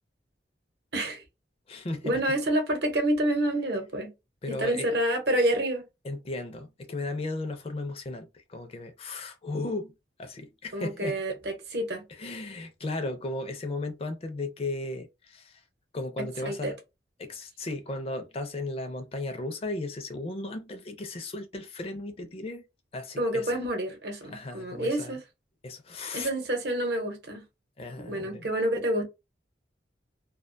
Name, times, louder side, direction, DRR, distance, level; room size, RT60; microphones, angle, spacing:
voice 1, 0.9-1.2 2.0-4.1 4.5-5.9 10.7-12.0 16.2-16.7 23.2-25.2 26.1-27.4 28.0-29.1, right 1 dB, 65° right, 0.8 m, -28 dB
voice 2, 1.7-2.2 4.4-4.9 6.0-9.9 10.2-11.2 12.1-15.6 15.9-16.8 17.2-22.6 22.9-23.6 24.3-25.2 25.6-26.3 27.8-28.5, left 2 dB, 35° left, 0.4 m, -35 dB
2.4 x 2.2 x 2.5 m
head